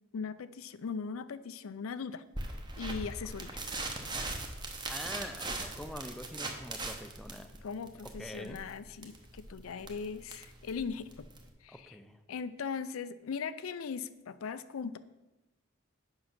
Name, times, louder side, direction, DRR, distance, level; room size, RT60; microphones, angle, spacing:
voice 1, 0.1-2.2 2.8-3.6 7.6-11.3 11.6-12.0 12.3-15.0, left 5 dB, 85° left, 13 dB, 0.4 m, -39 dB
sound 1, 2.3-11.5, right 2 dB, 20° right, 0.9 m, -40 dB
voice 2, 4.9-7.6 8.2-8.6 11.7-12.2, equal, ahead, 7 dB, 0.4 m, -44 dB
7.8 x 5.6 x 5.8 m, 1.1 s
head